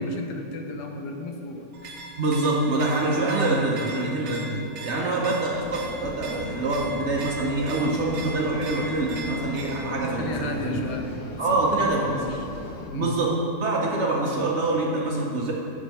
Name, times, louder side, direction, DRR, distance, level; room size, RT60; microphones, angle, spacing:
voice 1, 0.0-1.7 4.9-5.2 10.2-11.7 12.1-12.5 12.9-13.1, left 3 dB, 90° left, 4 dB, 1.3 m, -34 dB
sound 1, 1.7-10.0, right 2 dB, 80° right, 1.3 m, -39 dB
voice 2, 2.2-4.5 4.8-10.8 11.4-12.1 12.9-15.5, right 2 dB, 55° right, -2 dB, 0.8 m, -25 dB
sound 2, 5.5-12.9, left 2 dB, 70° left, 1.2 m, -38 dB
6.2 x 5.4 x 4.1 m, 2.7 s
omnidirectional pair, 1.7 m